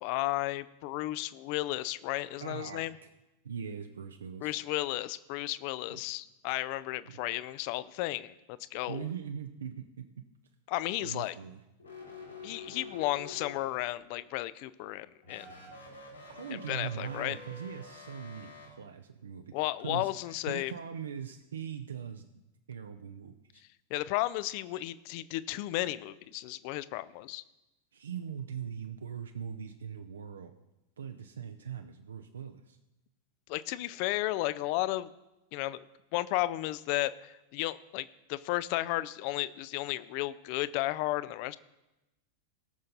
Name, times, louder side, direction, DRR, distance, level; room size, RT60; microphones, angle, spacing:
voice 1, 0.0-3.0 4.4-9.1 10.7-11.4 12.4-15.5 16.7-17.4 19.5-20.7 23.9-27.4 33.5-35.1 35.5-35.8 36.1-41.6, left 17 dB, 45° left, 17 dB, 0.5 m, -33 dB
voice 2, 2.4-3.1 3.4-4.6 5.9-6.0 7.1-7.2 8.9-10.1 11.0-11.6 16.3-22.2 22.7-23.6 27.9-30.5 31.0-32.8, right 7 dB, 70° right, 7 dB, 0.6 m, -41 dB
sound 1, 11.8-14.0 15.2-18.7, left 3 dB, 75° left, 3.5 m, -48 dB
18.0 x 6.5 x 4.0 m, 0.96 s
figure-of-eight pair, 90°, 0 cm